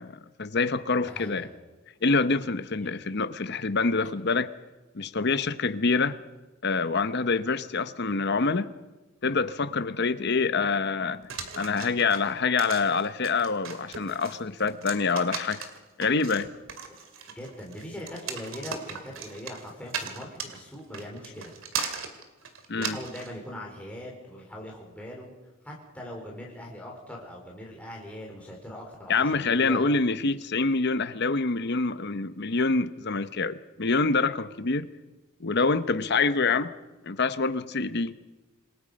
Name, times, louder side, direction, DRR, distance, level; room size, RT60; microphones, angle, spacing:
voice 1, 0.0-1.5 2.0-4.5 4.9-6.2 6.6-8.7 9.2-11.2 11.6-15.7 16.0-16.5 22.7-23.0 29.1-34.9 35.4-36.7 37.0-38.1, left 4 dB, 50° left, 12 dB, 0.9 m, -26 dB
voice 2, 1.0-1.5 2.8-2.9 17.4-21.5 22.7-25.3 25.6-29.8, left 1 dB, 5° left, -2 dB, 3.8 m, -41 dB
sound 1, 11.3-23.3, right 6 dB, 70° right, 2.4 m, -37 dB
27.0 x 19.0 x 5.3 m, 1.2 s
head